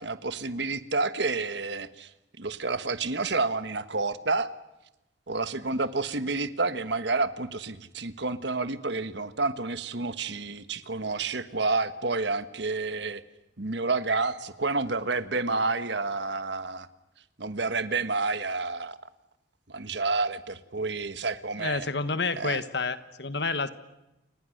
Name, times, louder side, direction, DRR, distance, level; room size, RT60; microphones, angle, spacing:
voice 1, 0.0-2.1 2.4-4.5 5.3-13.2 13.6-16.9 17.4-19.0 19.7-21.9 22.4-22.6, right 3 dB, 70° right, 12 dB, 1.4 m, -29 dB
voice 2, 21.6-23.7, left 4 dB, 65° left, 12 dB, 1.5 m, -29 dB
29.5 x 26.5 x 6.6 m, 0.96 s
head